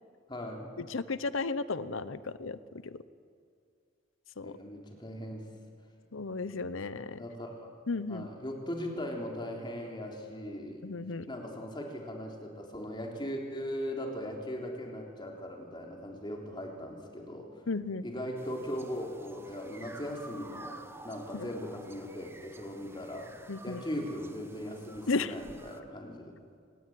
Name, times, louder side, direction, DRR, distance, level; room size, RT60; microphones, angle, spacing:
voice 1, 0.3-0.7 4.4-5.5 7.2-7.7 8.1-10.8 11.3-17.6 18.0-23.3 23.6-26.3, equal, 25° left, 1 dB, 3.6 m, -39 dB
voice 2, 0.9-2.6 2.8-3.0 4.4-4.5 6.1-7.2 7.9-8.3 10.8-11.2 17.7-18.0 21.3-21.5 23.5-23.8 25.1-25.3, left 3 dB, 85° left, 15 dB, 0.9 m, -34 dB
sound 1, 18.4-25.8, right 2 dB, 10° right, 1.1 m, -51 dB
25.0 x 19.5 x 9.4 m, 2.3 s
head